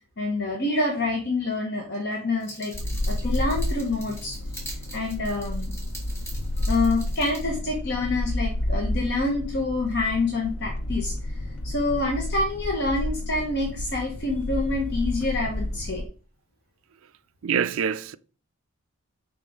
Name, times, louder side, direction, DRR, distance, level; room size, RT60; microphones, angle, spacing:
voice 1, 0.2-2.7 3.1-4.4 4.7-5.7 6.7-11.1 11.6-16.0, left 2 dB, 50° left, 1.1 m, -27 dB
sound 1, 2.4-7.4, right 1 dB, 10° left, 1.9 m, -43 dB
sound 2, 2.7-16.0, left 1 dB, 85° left, 0.7 m, -30 dB
voice 2, 17.4-18.2, right 7 dB, 65° right, 0.4 m, -25 dB
5.0 x 3.7 x 5.3 m
head